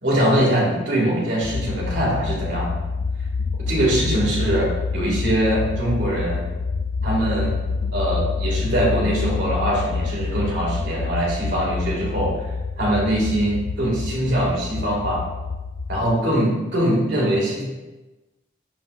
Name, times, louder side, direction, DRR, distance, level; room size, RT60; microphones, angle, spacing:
voice 1, 0.0-2.8 3.7-6.4 7.0-7.5 7.9-12.5 12.8-15.2 15.9-17.6, right 1 dB, 65° right, -4 dB, 2.1 m, -22 dB
sound 1, 1.4-16.1, left 4 dB, 70° left, 0.4 m, -27 dB
11.0 x 3.9 x 2.5 m, 1.1 s
head